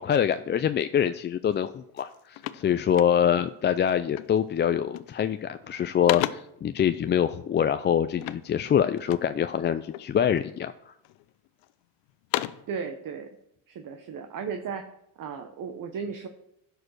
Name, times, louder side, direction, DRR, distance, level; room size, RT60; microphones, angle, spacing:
voice 1, 0.0-10.9, left 9 dB, 25° left, 10 dB, 0.3 m, -25 dB
sound 1, 1.5-1.7 2.0-3.5 4.1-4.5 4.8-5.3 5.6-6.7 8.2-9.4 9.9-10.5 11.0-11.7 12.1-12.8, left 16 dB, 80° left, 0.7 m, -35 dB
voice 2, 12.7-13.3 13.7-14.8 15.2-16.3, right 6 dB, 45° right, 7 dB, 1.0 m, -35 dB
11.0 x 4.9 x 6.4 m, 0.78 s
supercardioid pair, 80°, 45 cm